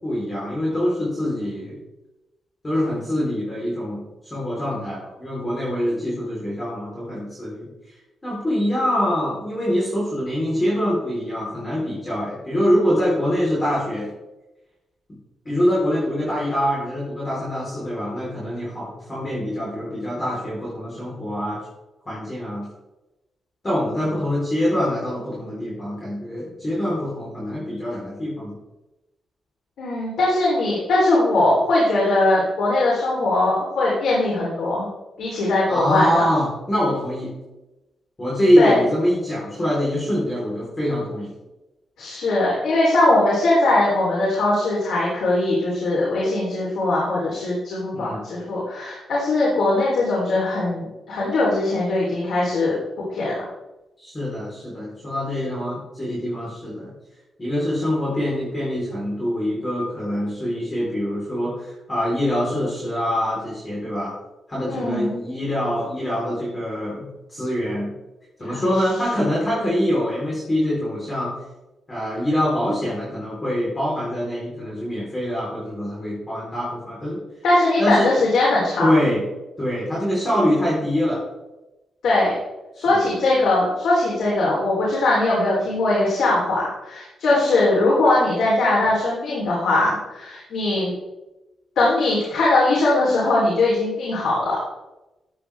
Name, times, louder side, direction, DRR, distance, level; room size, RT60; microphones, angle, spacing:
voice 1, 0.0-1.8 2.6-7.7 8.2-14.1 15.4-21.6 22.1-22.6 23.6-28.5 35.7-37.3 38.2-41.3 47.9-48.2 54.0-56.9 57.4-64.1 64.5-67.9 68.4-71.3 71.9-77.2 77.8-78.1 78.8-79.2 79.6-81.2 82.8-83.1, equal, 20° left, -7 dB, 4.1 m, -24 dB
voice 2, 29.8-34.9 35.2-36.3 38.6-38.8 42.0-52.8 53.1-53.4 64.7-65.2 77.4-78.9 82.0-82.3 82.8-90.9 91.8-94.6, left 2 dB, 85° left, -6 dB, 3.6 m, -20 dB
13.5 x 8.5 x 3.5 m, 1.0 s
wide cardioid pair, 155°, 0 cm